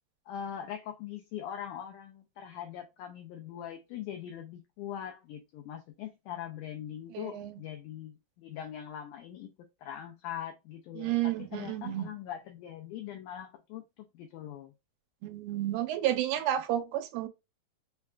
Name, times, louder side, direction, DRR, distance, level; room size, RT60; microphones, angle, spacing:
voice 1, 0.3-14.7, left 10 dB, 85° left, 1.7 m, -42 dB
voice 2, 7.1-7.5 11.0-12.1 15.2-17.3, right 12 dB, 85° right, 2.3 m, -31 dB
5.5 x 2.2 x 2.3 m
omnidirectional pair, 4.1 m